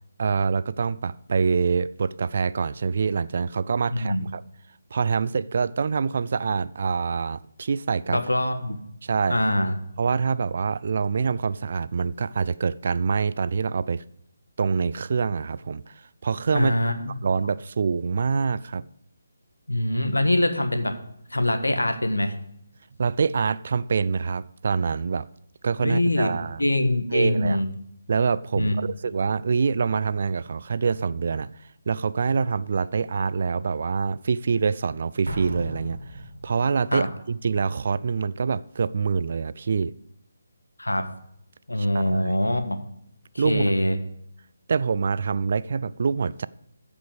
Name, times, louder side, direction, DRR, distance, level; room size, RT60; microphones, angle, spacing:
voice 1, 0.2-4.4 4.9-8.2 9.0-9.4 10.0-14.0 14.6-16.8 17.2-18.8 23.0-25.3 25.6-26.6 27.1-27.6 28.1-39.9 41.8-42.3 43.4-43.6 44.7-46.5, right 5 dB, 45° right, 0.3 m, -25 dB
voice 2, 3.9-4.2 8.1-8.8 9.3-9.7 16.5-16.9 19.7-20.9 21.3-22.3 25.8-26.3 26.6-27.7 28.6-28.9 36.9-37.1 40.8-41.1 41.7-42.8 43.3-44.0, left 1 dB, 75° left, 1.4 m, -23 dB
Explosion, 35.2-36.8, right 1 dB, 65° right, 1.9 m, -35 dB
14.5 x 5.3 x 4.9 m
figure-of-eight pair, 150°, 0 cm